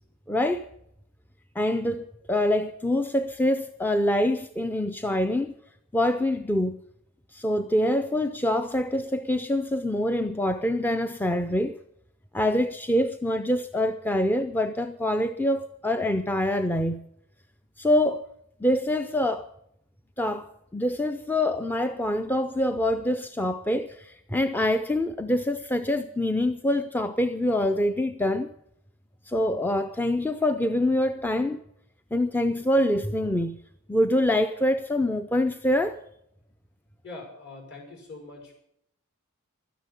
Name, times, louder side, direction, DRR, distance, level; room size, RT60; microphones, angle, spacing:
voice 1, 0.3-0.7 1.6-5.5 5.9-6.8 7.3-11.7 12.3-17.0 17.8-18.3 18.6-19.5 20.2-28.5 29.3-31.6 32.1-33.6 33.9-36.0, left 1 dB, 10° left, 0.4 m, -25 dB
voice 2, 37.0-38.5, left 2 dB, 55° left, 5.9 m, -43 dB
13.0 x 10.0 x 8.3 m
head